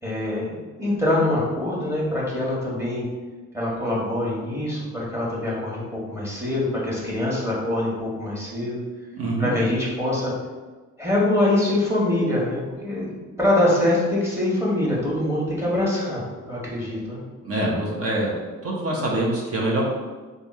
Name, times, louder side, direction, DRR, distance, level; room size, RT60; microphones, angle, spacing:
voice 1, 0.0-3.0 3.5-8.8 9.4-10.3 11.0-13.1 13.4-17.2, left 1 dB, 10° right, -5 dB, 1.4 m, -24 dB
voice 2, 9.1-9.5 17.4-18.3 18.6-19.8, right 1 dB, 50° right, -3 dB, 1.0 m, -24 dB
3.3 x 2.5 x 4.2 m, 1.3 s
cardioid pair, 90°, 30 cm